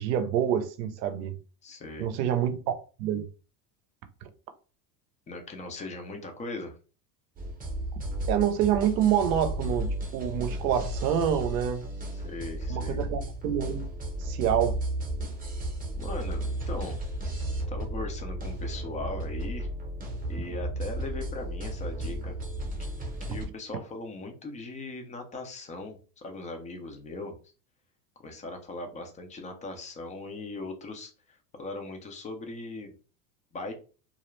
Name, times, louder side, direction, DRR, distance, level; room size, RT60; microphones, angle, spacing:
voice 1, 0.0-1.3 2.0-2.6 3.0-3.2 8.3-11.9 12.7-13.8 14.2-14.8, right 9 dB, 80° right, 0.6 m, -27 dB
voice 2, 1.6-2.1 5.3-6.8 12.1-13.1 16.0-17.0 17.7-19.7 20.3-22.3 22.8-22.9 23.3-27.4 28.2-32.9 33.5-33.7, left 2 dB, 15° left, 0.4 m, -39 dB
sound 1, 7.4-23.5, right 1 dB, 15° right, 0.7 m, -34 dB
2.4 x 2.0 x 3.0 m
supercardioid pair, 105°, 50 cm